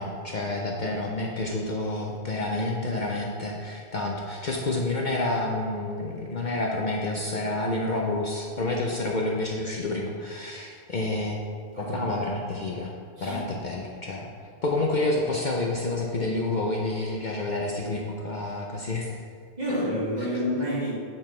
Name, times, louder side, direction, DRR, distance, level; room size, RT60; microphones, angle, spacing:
voice 1, 0.0-11.4 11.8-12.9 13.2-14.3 14.6-19.2, left 2 dB, 50° left, -1 dB, 0.7 m, -29 dB
voice 2, 19.6-20.9, equal, 40° right, -8 dB, 2.2 m, -28 dB
7.9 x 7.3 x 3.2 m, 2.1 s
omnidirectional pair, 1.1 m